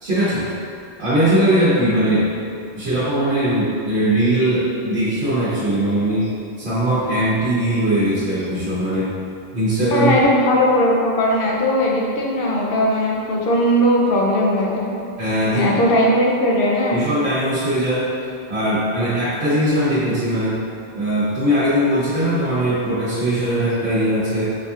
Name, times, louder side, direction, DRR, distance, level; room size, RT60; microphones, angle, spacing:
voice 1, 0.0-0.5 1.0-2.3 2.7-9.1 9.5-10.2 15.2-15.7 16.9-18.1 18.5-20.6 20.9-24.5, right 1 dB, 85° right, -12 dB, 1.2 m, -20 dB
voice 2, 9.9-14.9 15.4-17.0, left 1 dB, 65° left, -3 dB, 0.8 m, -18 dB
5.4 x 2.7 x 2.3 m, 2.4 s
omnidirectional pair, 1.1 m